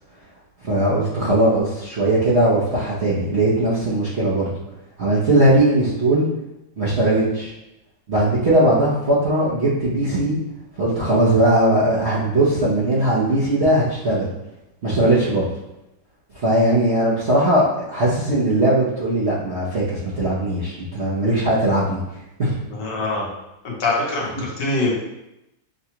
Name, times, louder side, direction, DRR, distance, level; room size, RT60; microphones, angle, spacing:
voice 1, 0.6-4.5 5.0-6.3 6.8-7.5 8.1-10.4 10.8-14.3 14.8-15.5 16.4-22.0 22.4-22.5 24.3-24.4, right 1 dB, 55° right, -9 dB, 0.7 m, -19 dB
voice 2, 22.7-23.3 23.6-24.9, left 2 dB, 65° left, -4 dB, 1.4 m, -24 dB
6.5 x 2.3 x 2.9 m, 0.89 s
omnidirectional pair, 2.2 m